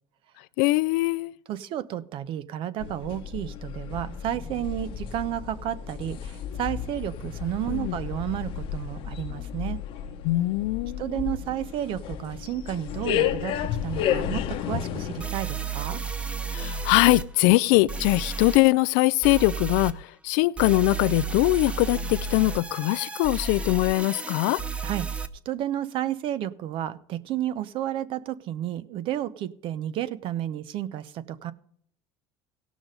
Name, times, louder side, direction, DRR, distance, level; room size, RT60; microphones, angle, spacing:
voice 1, 0.6-1.3 7.7-8.0 10.2-11.2 16.5-24.6, left 20 dB, 75° left, 0.4 m, -22 dB
voice 2, 1.5-9.8 11.0-13.5 13.8-16.0 24.8-25.2 25.4-31.5, right 12 dB, 55° right, 0.8 m, -32 dB
sound 1, 2.8-15.3, left 9 dB, 55° left, 1.0 m, -32 dB
sound 2, 14.5-14.6 15.2-17.2 17.9-18.6 19.2-19.9 20.6-25.3, right 4 dB, 10° right, 0.7 m, -32 dB
16.5 x 6.2 x 5.2 m
supercardioid pair, 120°, 11 cm